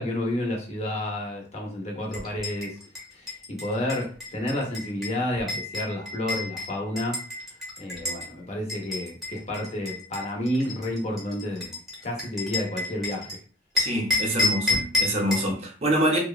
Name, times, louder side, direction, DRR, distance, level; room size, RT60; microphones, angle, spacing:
voice 1, 0.0-2.8 3.1-7.2 7.8-11.7 12.0-13.3, left 1 dB, 40° left, 0.7 m, -30 dB
sound 1, 2.1-8.3 8.7-13.4 13.8-15.5, left 3 dB, 5° right, 0.9 m, -30 dB
voice 2, 13.7-16.2, right 1 dB, 35° right, 0.6 m, -25 dB
2.9 x 2.1 x 2.3 m
head